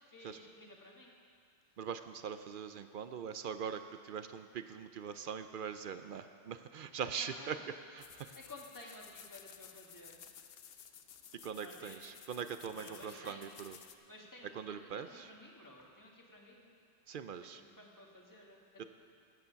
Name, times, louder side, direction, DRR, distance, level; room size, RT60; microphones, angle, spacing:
voice 1, 0.1-1.1 7.2-7.5 8.3-10.2 11.2-11.3 11.6-12.0 12.7-13.6 14.1-16.7 17.5-18.8, left 1 dB, 15° left, -2 dB, 1.6 m, -54 dB
voice 2, 1.8-7.6 7.9-8.4 11.4-13.8 14.5-15.3 17.1-17.6 18.8-18.9, right 7 dB, 60° right, 10 dB, 0.6 m, -42 dB
sound 1, 8.0-14.0, left 8 dB, 65° left, 0.8 m, -55 dB
14.0 x 9.3 x 5.7 m, 2.2 s
omnidirectional pair, 1.1 m